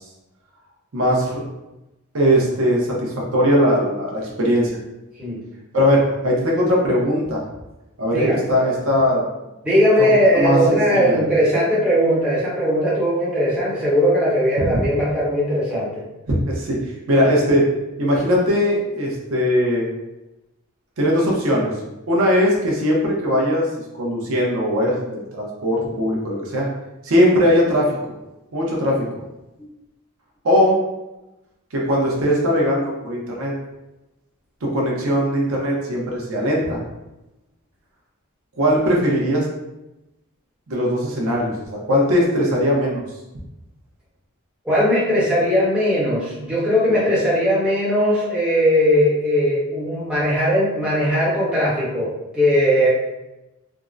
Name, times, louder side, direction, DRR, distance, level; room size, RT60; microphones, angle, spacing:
voice 1, 0.9-1.4 2.1-4.8 5.7-7.4 8.0-9.2 10.0-10.1 10.3-11.2 14.6-14.8 16.3-17.7 18.0-19.9 21.0-21.7 22.1-23.7 24.0-26.7 27.0-28.0 28.5-29.1 30.4-30.8 31.7-33.5 34.6-36.8 38.6-39.5 40.7-43.0 46.9-47.0, equal, 70° right, -3 dB, 0.7 m, -19 dB
voice 2, 9.6-16.0 44.6-52.9, equal, 5° right, -9 dB, 0.9 m, -19 dB
3.5 x 2.0 x 2.5 m, 0.98 s
head